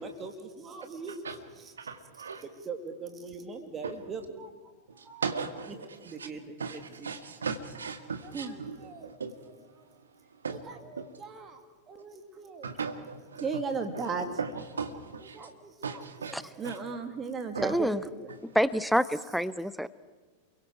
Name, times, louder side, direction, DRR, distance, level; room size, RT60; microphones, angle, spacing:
voice 1, 0.2-1.2 2.6-4.5 5.1-5.2 6.0-7.1 8.3-9.1 10.5-11.6 11.9-12.7 13.4-14.3 15.3-17.9, right 4 dB, 25° right, 5 dB, 2.5 m, -38 dB
voice 2, 1.8-2.4 3.8-3.9 5.0-6.3 6.6-9.4 10.4-10.6 11.0-11.1 12.6-13.5 13.9-14.0 14.4-15.5 15.8-16.4 16.6-16.8 17.5-17.8, right 5 dB, 70° right, 7 dB, 1.9 m, -37 dB
voice 3, 17.6-18.0 18.4-19.9, equal, ahead, 16 dB, 0.7 m, -27 dB
28.0 x 23.0 x 4.7 m, 1.4 s
figure-of-eight pair, 90°, 0 cm